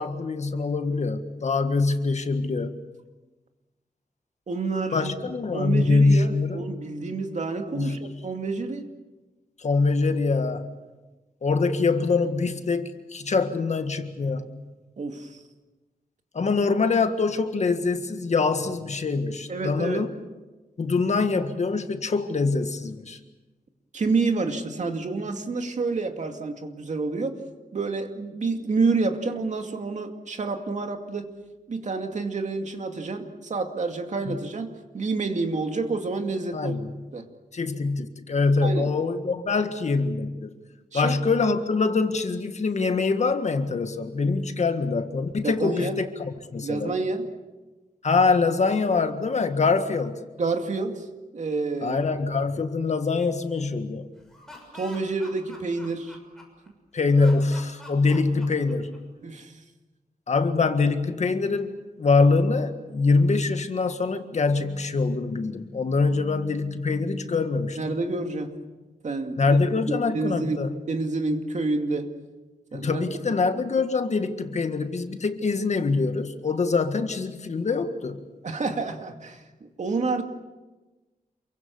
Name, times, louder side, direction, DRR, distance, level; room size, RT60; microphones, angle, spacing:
voice 1, 0.0-2.7 4.9-6.7 7.7-8.2 9.6-10.7 11.4-14.5 16.3-20.1 20.8-23.2 34.3-34.4 36.5-37.0 37.5-40.5 40.9-46.1 46.5-46.9 48.0-50.2 51.8-54.1 56.9-59.0 60.3-61.7 62.0-67.9 69.4-70.7 72.7-78.2, left 4 dB, 50° left, 8 dB, 1.7 m, -24 dB
voice 2, 4.5-5.1 5.5-8.9 15.0-15.4 19.5-20.0 23.9-27.4 27.7-31.3 31.7-36.8 37.1-37.3 38.6-38.9 40.9-41.2 45.4-45.9 46.6-47.3 50.4-51.0 51.3-52.0 54.7-56.2 59.2-59.5 67.8-68.5 69.0-69.6 70.1-72.1 72.7-73.1 78.4-80.2, right 3 dB, 50° right, 5 dB, 2.4 m, -28 dB
Laughter, 54.2-56.7 57.1-59.2, left 1 dB, 5° left, 6.6 m, -46 dB
28.0 x 23.5 x 7.1 m, 1.2 s
wide cardioid pair, 160°, 15 cm